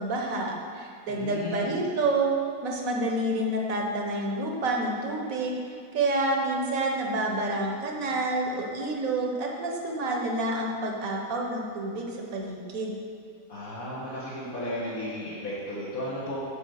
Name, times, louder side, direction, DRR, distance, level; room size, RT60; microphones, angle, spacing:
voice 1, 0.0-2.3 2.6-12.9, right 2 dB, 65° right, 0 dB, 1.6 m, -28 dB
voice 2, 1.1-1.7 13.5-16.4, left 1 dB, 65° left, -9 dB, 1.9 m, -34 dB
9.1 x 5.4 x 6.4 m, 2.3 s
omnidirectional pair, 1.6 m